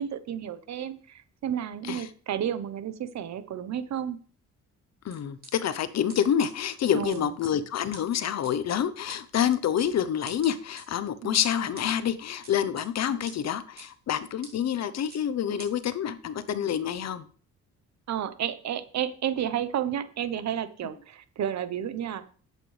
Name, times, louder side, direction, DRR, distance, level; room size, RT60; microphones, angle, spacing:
voice 1, 0.0-4.2 6.9-7.3 11.2-11.4 18.1-22.2, right 9 dB, 65° right, 13 dB, 1.0 m, -31 dB
voice 2, 5.0-17.3, left 9 dB, 60° left, 14 dB, 0.9 m, -27 dB
sound 1, 5.1-5.5 6.1-6.2 6.4-6.5 7.1-7.5 7.9-8.0 8.4-8.5 9.1-9.2 9.8-9.9 10.3-10.8 11.4-11.9 12.4-12.9 13.3-13.4 13.8-13.9 14.4-14.5 15.1-15.2 15.6-15.7, right 3 dB, 30° right, 3.5 m, -45 dB
10.5 x 8.3 x 3.4 m, 0.42 s
cardioid pair, 90°, 30 cm